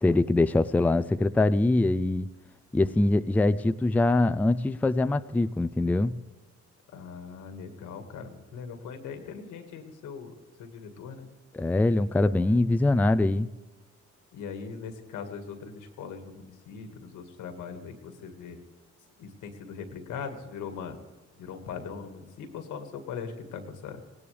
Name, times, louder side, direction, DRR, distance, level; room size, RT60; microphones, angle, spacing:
voice 1, 0.0-2.3 2.7-6.2 11.5-13.5, left 2 dB, 5° left, 12 dB, 0.4 m, -23 dB
voice 2, 6.9-10.3 10.6-11.3 14.3-18.6 19.2-21.0 21.4-24.0, left 6 dB, 90° left, 6 dB, 1.9 m, -40 dB
18.0 x 18.0 x 3.4 m, 1.2 s
cardioid pair, 90°, 30 cm